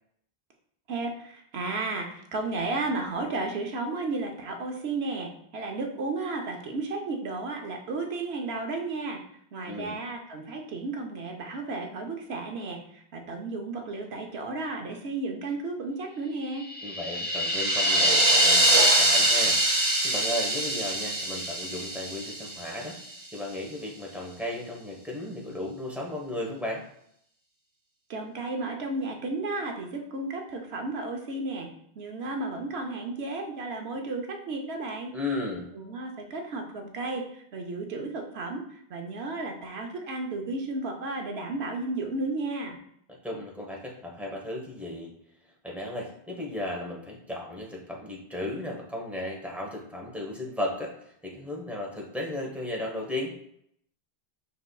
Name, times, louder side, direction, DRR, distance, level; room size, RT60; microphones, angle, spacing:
voice 1, 0.9-9.2 9.5-16.7 28.1-31.7 32.0-35.1 35.7-42.8, right 3 dB, 90° right, 3 dB, 1.0 m, -33 dB
voice 2, 9.7-10.0 16.8-23.0 23.3-26.8 35.1-35.7 43.2-45.1 45.6-53.3, left 1 dB, ahead, -2 dB, 0.9 m, -35 dB
sound 1, 16.7-22.9, right 1 dB, 35° right, 0.8 m, -23 dB
5.2 x 3.9 x 2.2 m, 0.71 s
omnidirectional pair, 1.0 m